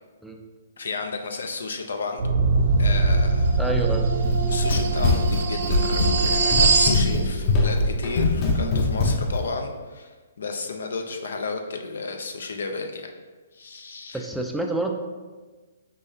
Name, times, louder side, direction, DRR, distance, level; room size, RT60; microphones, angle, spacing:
voice 1, 0.8-2.2 2.8-3.6 4.5-13.1 13.5-14.2, left 4 dB, 75° left, 5 dB, 0.5 m, -33 dB
sound 1, 2.2-7.0, right 3 dB, 65° right, 0.6 m, -22 dB
voice 2, 3.6-4.1 14.1-14.9, right 2 dB, 5° right, 2 dB, 0.4 m, -27 dB
Run, 4.2-9.5, left 2 dB, 35° left, 0.8 m, -22 dB
5.4 x 3.4 x 2.8 m, 1.3 s
hypercardioid pair, 135°, 0 cm